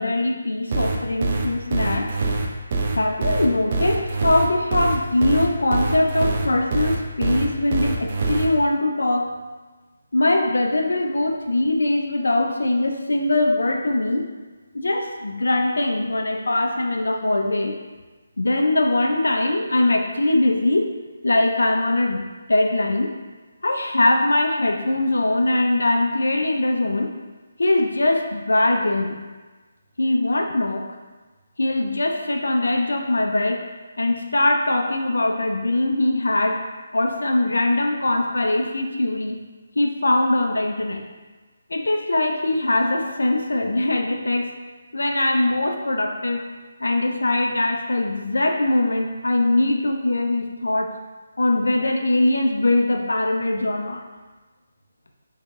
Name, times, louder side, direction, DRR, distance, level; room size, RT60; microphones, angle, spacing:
voice 1, 0.0-2.1 2.9-9.3 10.1-14.2 14.7-17.7 18.4-20.9 21.2-23.1 23.6-27.1 27.6-29.2 30.0-30.9 31.6-33.6 34.0-36.6 36.9-39.4 39.8-41.0 41.7-44.5 44.9-46.4 46.8-50.9 51.4-54.0, left 2 dB, 65° left, 3 dB, 0.5 m, -21 dB
sound 1, 0.7-8.5, right 3 dB, 35° right, 0.4 m, -24 dB
5.1 x 2.7 x 2.4 m, 1.3 s
figure-of-eight pair, 150°, 0 cm